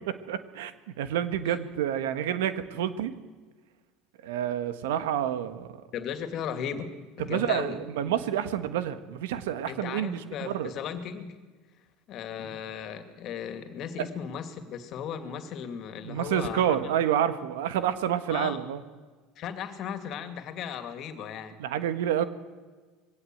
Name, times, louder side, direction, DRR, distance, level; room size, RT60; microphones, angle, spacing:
voice 1, 0.1-0.7 1.0-3.1 4.2-5.7 7.2-10.7 16.0-18.8 21.6-22.2, right 10 dB, 85° right, 12 dB, 1.4 m, -28 dB
voice 2, 5.9-7.8 9.7-11.4 12.1-16.9 18.3-18.6 19.4-21.6, left 8 dB, 55° left, 9 dB, 2.5 m, -36 dB
21.5 x 17.0 x 7.9 m, 1.4 s
hypercardioid pair, 90°, 0 cm